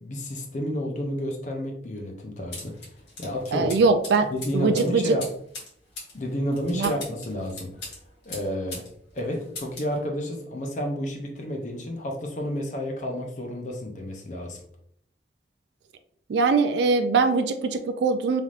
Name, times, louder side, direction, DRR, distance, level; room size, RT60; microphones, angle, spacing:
voice 1, 0.0-2.7 3.2-3.7 4.3-5.3 6.1-7.7 8.2-8.8 9.1-14.6, equal, 40° left, 1 dB, 0.6 m, -30 dB
sound 1, 2.5-8.9 9.2-9.9, left 2 dB, 75° left, 1.2 m, -40 dB
voice 2, 3.5-5.2 6.7-6.9 16.3-18.4, right 4 dB, 70° right, 8 dB, 0.3 m, -22 dB
3.2 x 2.7 x 2.4 m, 0.68 s
head